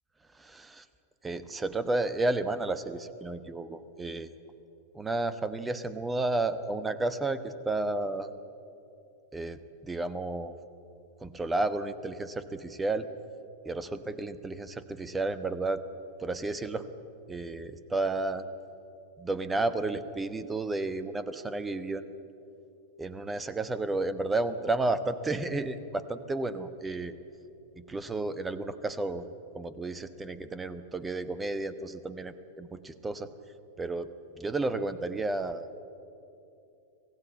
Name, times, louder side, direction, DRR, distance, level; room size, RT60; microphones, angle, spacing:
voice 1, 0.4-0.8 1.2-4.3 4.9-8.3 9.3-10.6 11.2-13.1 13.6-15.8 16.2-16.8 17.3-18.4 19.2-22.0 23.0-27.1 27.8-29.3 29.5-33.3 33.8-34.1 34.4-35.8, right 2 dB, 10° right, 13 dB, 1.2 m, -32 dB
26.5 x 17.0 x 8.5 m, 2.8 s
figure-of-eight pair, 90°, 0 cm